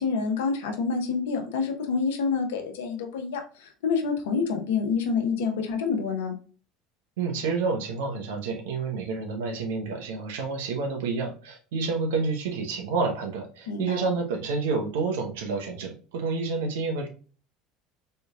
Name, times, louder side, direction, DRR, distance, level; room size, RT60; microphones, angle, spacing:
voice 1, 0.0-6.3 13.7-14.0, left 5 dB, 75° left, 4 dB, 0.9 m, -27 dB
voice 2, 7.2-17.1, right 4 dB, 70° right, 4 dB, 0.9 m, -29 dB
4.4 x 3.2 x 2.3 m, 0.39 s
hypercardioid pair, 70°, 0 cm